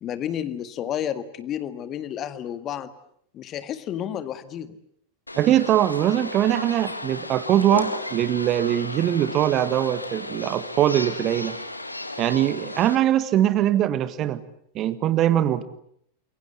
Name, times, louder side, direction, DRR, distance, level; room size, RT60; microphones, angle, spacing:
voice 1, 0.0-2.9 3.3-4.8, left 10 dB, 30° left, 12 dB, 1.8 m, -31 dB
sound 1, 5.3-13.0, left 1 dB, 85° left, 2.0 m, -34 dB
voice 2, 5.4-11.6 12.2-14.4 14.7-15.6, right 12 dB, 35° right, 14 dB, 1.5 m, -22 dB
28.5 x 23.0 x 8.2 m, 0.68 s
figure-of-eight pair, 90°, 0 cm